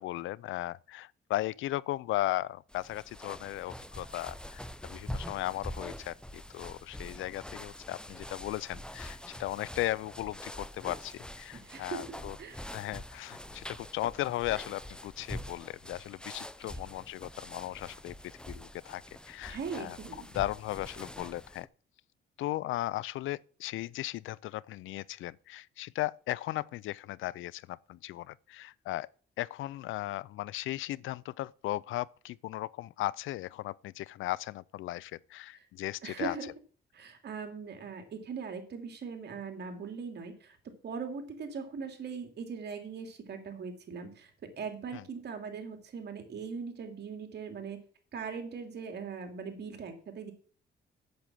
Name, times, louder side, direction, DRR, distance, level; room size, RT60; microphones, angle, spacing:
voice 1, 0.0-12.4 12.7-18.1 18.5-20.0 20.3-21.7 22.4-29.1 29.4-36.4 44.9-45.0, left 16 dB, 80° left, 0.5 m, -36 dB
sound 1, 2.7-21.7, equal, 5° left, 0.7 m, -44 dB
voice 2, 11.5-12.6 16.7-16.8 19.5-20.3 35.5-35.6 36.0-36.5 36.9-40.6 40.8-47.8 48.1-50.3, right 5 dB, 55° right, 2.9 m, -40 dB
8.5 x 7.5 x 7.5 m
cardioid pair, 90°, 20 cm